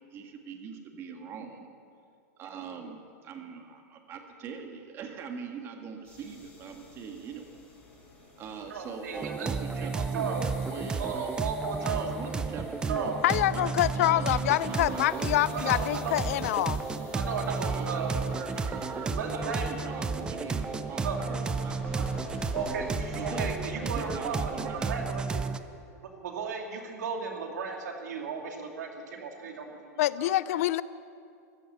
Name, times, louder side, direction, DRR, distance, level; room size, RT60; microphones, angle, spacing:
voice 1, 0.0-1.7 2.4-7.6 8.4-11.1 11.8-13.1 13.5-15.4 17.5-22.0 23.1-23.5 23.8-25.0, right 6 dB, 30° right, 4 dB, 1.7 m, -41 dB
sound 1, 6.0-25.2, left 1 dB, 15° left, 4.9 m, -46 dB
voice 2, 8.7-9.5 9.8-10.4 11.0-12.1 12.9-13.2 15.5-16.3 17.1-18.2 19.1-19.7 21.0-21.2 21.8-22.0 22.5-25.4 26.0-29.9 30.2-30.4, right 5 dB, 85° right, 2 dB, 2.6 m, -35 dB
sound 2, 9.1-25.6, right 4 dB, 10° right, 0.4 m, -33 dB
voice 3, 13.2-16.8 30.0-30.8, left 14 dB, 60° left, 18 dB, 0.5 m, -26 dB
14.5 x 14.0 x 6.9 m, 2.4 s
supercardioid pair, 150°, 9 cm